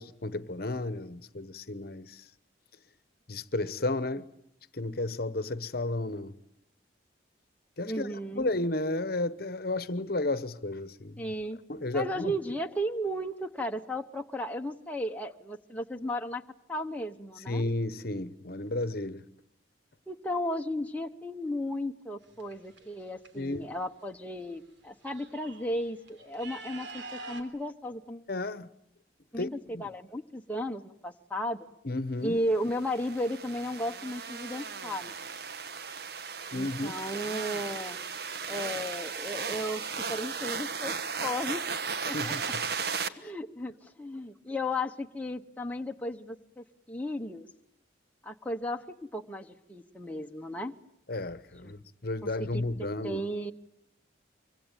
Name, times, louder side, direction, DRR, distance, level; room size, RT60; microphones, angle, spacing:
voice 1, 0.0-2.2 3.3-4.2 4.7-6.3 7.8-11.2 11.7-12.3 17.5-19.2 23.3-23.7 28.3-28.7 29.4-29.8 31.8-32.4 36.5-36.9 42.1-42.4 43.2-43.3 51.1-53.2, left 2 dB, 50° left, 1.0 m, -33 dB
voice 2, 7.8-8.5 11.2-11.6 11.9-16.4 16.7-17.6 20.1-28.3 29.3-31.6 32.2-35.1 36.5-38.0 38.5-39.8 40.1-42.3 43.2-47.5 48.2-50.7 51.6-51.7 52.2-52.6 53.0-53.5, equal, 10° left, 1.0 m, -35 dB
sound 1, 22.2-23.3 24.4-24.5 24.8-27.4, right 3 dB, 70° right, 3.5 m, -46 dB
sound 2, 32.6-43.1, right 5 dB, 55° right, 1.2 m, -36 dB
25.0 x 24.5 x 9.0 m
head